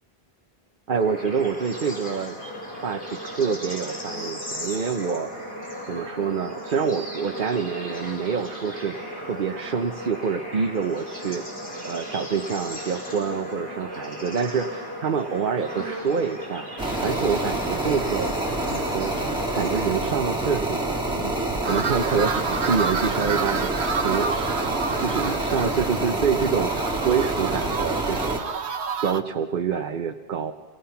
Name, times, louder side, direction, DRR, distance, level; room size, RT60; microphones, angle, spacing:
Bird / Insect / Frog, 0.9-19.8, equal, 60° left, 5.2 m, -36 dB
voice 1, 0.9-2.4 2.8-5.3 5.9-11.4 11.8-16.6 17.0-18.4 18.7-19.1 19.5-23.7 24.0-24.7 25.0-26.7 27.0-28.4 29.0-30.5, right 6 dB, 50° right, 5 dB, 0.9 m, -27 dB
sound 1, 16.8-28.4, right 2 dB, 5° right, 2.3 m, -27 dB
sound 2, 21.6-29.2, right 5 dB, 75° right, 1.2 m, -30 dB
28.5 x 18.5 x 5.8 m, 1.3 s
omnidirectional pair, 1.1 m